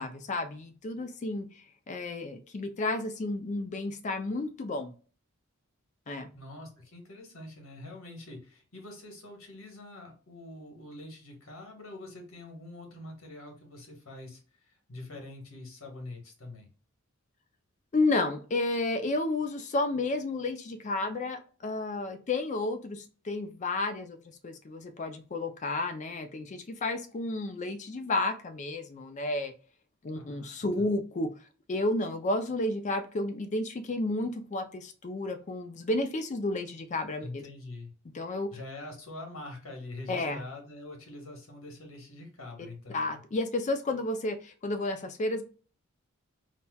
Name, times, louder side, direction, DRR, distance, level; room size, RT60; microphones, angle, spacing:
voice 1, 0.0-4.9 6.1-6.3 17.9-24.2 24.4-29.5 30.0-31.3 31.7-37.5 38.1-38.5 40.1-40.4 42.9-45.4, left 2 dB, 35° left, 8 dB, 0.4 m, -31 dB
voice 2, 6.3-16.7 30.1-30.9 37.2-37.9 38.5-43.2, left 2 dB, 70° left, 2 dB, 1.2 m, -45 dB
4.1 x 2.1 x 2.2 m, 0.37 s
head